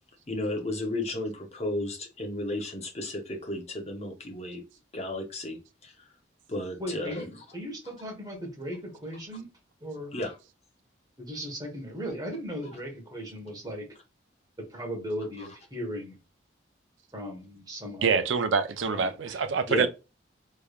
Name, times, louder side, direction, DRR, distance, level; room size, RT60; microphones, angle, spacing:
voice 1, 0.3-4.6 4.9-5.9 6.5-7.3 10.1-10.4 19.7-19.9, left 1 dB, 35° left, 0.8 m, -33 dB
voice 2, 6.8-7.3 7.5-9.5 9.8-10.1 11.2-13.9 14.7-16.2 17.1-18.3 18.8-19.4, equal, 20° right, 1.1 m, -37 dB
voice 3, 18.0-19.9, right 5 dB, 80° right, 0.5 m, -25 dB
3.4 x 3.2 x 2.4 m
head